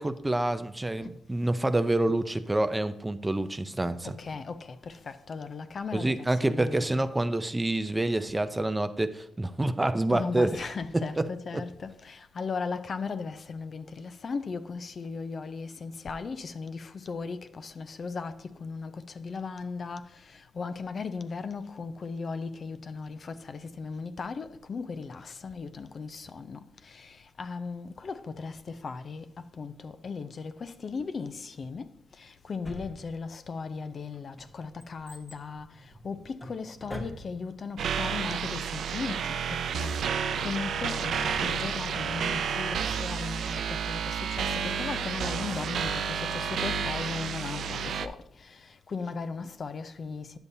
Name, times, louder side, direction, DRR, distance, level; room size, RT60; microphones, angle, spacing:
voice 1, 0.0-4.2 5.9-10.5 10.9-11.6, right 2 dB, 15° right, 0.5 m, -27 dB
voice 2, 4.2-4.6 5.1-7.0 10.1-18.3 18.6-20.0 20.6-26.6 27.4-29.2 29.6-31.9 32.5-35.7 36.0-39.2 39.5-39.9 40.4-48.1 48.9-50.3, left 4 dB, 50° left, 0.5 m, -37 dB
Drawer open or close, 32.6-33.5 34.1-37.6 37.9-38.0, equal, 25° left, 1.1 m, -44 dB
sound 1, 37.8-48.1, right 6 dB, 80° right, 0.4 m, -31 dB
9.8 x 6.9 x 2.7 m
cardioid pair, 90°, 0 cm